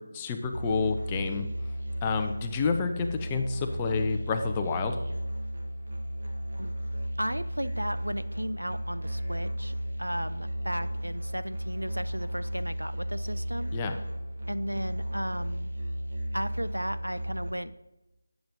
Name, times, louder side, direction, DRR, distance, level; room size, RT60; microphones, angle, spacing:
voice 1, 0.0-1.5 2.0-5.0 13.7-14.0, left 5 dB, 15° left, 5 dB, 0.5 m, -29 dB
Musical instrument, 0.5-17.5, equal, 45° right, 1.3 m, -34 dB
voice 2, 7.2-13.7 14.5-15.7 16.3-17.7, equal, 90° right, 13 dB, 0.4 m, -35 dB
8.7 x 6.9 x 2.6 m, 1.0 s
figure-of-eight pair, 160°, 0 cm